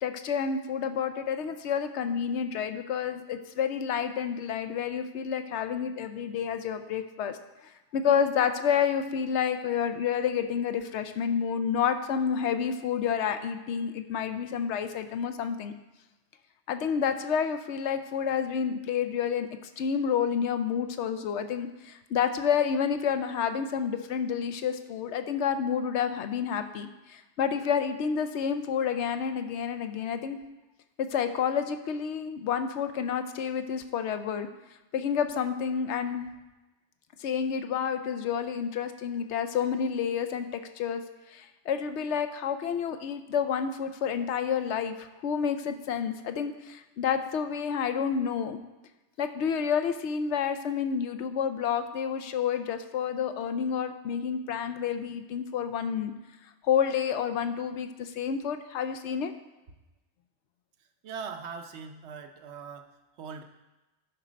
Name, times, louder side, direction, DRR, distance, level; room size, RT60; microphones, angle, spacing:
voice 1, 0.0-7.4 7.9-15.7 16.7-30.4 31.0-34.5 34.9-36.2 37.2-41.0 41.3-48.6 49.2-56.1 56.6-59.3, left 7 dB, 75° left, 9 dB, 0.9 m, -29 dB
voice 2, 61.0-62.9 63.2-63.4, right 5 dB, 70° right, 7 dB, 1.0 m, -40 dB
11.0 x 4.3 x 5.1 m, 1.0 s
omnidirectional pair, 1.2 m